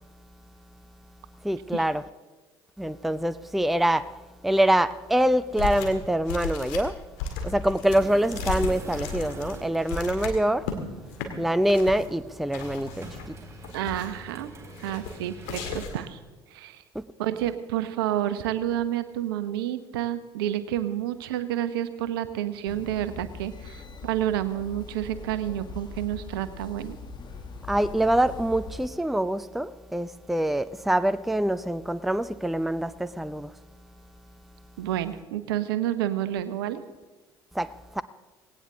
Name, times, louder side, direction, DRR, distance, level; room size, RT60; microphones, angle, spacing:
voice 1, 1.4-2.1 2.8-4.1 4.4-7.0 7.4-10.7 11.4-13.4 16.9-17.0 27.7-33.5 37.5-37.7 37.9-38.0, right 1 dB, ahead, 0.5 m, -25 dB
sound 1, 5.6-6.0 6.3-10.8 11.1-11.3 11.7-12.1 12.5-13.3 13.6-14.2 14.8-15.2 15.4-16.1, left 5 dB, 60° left, 2.2 m, -34 dB
sound 2, 7.9-15.8, right 2 dB, 20° right, 3.8 m, -44 dB
voice 2, 13.7-14.5 14.8-16.2 16.5-16.8 17.2-27.0 34.8-36.8, right 12 dB, 65° right, 0.9 m, -29 dB
sound 3, 22.7-28.9, left 4 dB, 35° left, 1.5 m, -41 dB
18.5 x 17.5 x 3.7 m
figure-of-eight pair, 60°, 13 cm